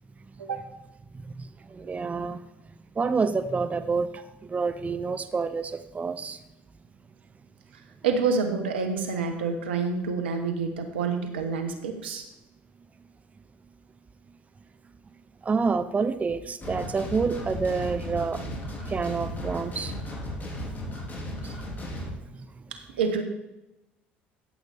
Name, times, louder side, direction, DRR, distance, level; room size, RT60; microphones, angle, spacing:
voice 1, 0.4-0.7 8.0-12.3 22.7-23.2, right 5 dB, 85° right, 6 dB, 1.3 m, -28 dB
voice 2, 1.7-2.4 3.0-4.1 4.5-6.4 15.5-18.4 18.9-19.9, right 4 dB, 25° right, 11 dB, 0.7 m, -27 dB
sound 1, 16.6-22.1, equal, 30° left, 3.8 m, -35 dB
13.5 x 8.1 x 3.5 m, 0.97 s
hypercardioid pair, 65°, 6 cm